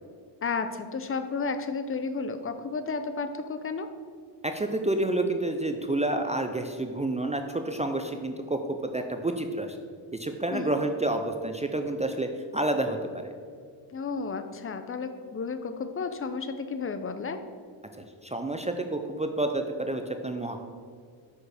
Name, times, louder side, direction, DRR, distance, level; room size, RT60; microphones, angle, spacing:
voice 1, 0.4-3.9 10.5-10.8 13.9-17.4, left 4 dB, 30° left, 9 dB, 0.5 m, -32 dB
voice 2, 4.4-8.6 8.9-9.8 10.1-13.3 18.2-20.6, right 2 dB, 15° right, 5 dB, 0.3 m, -29 dB
6.5 x 4.8 x 4.9 m, 2.1 s
cardioid pair, 105°, 46 cm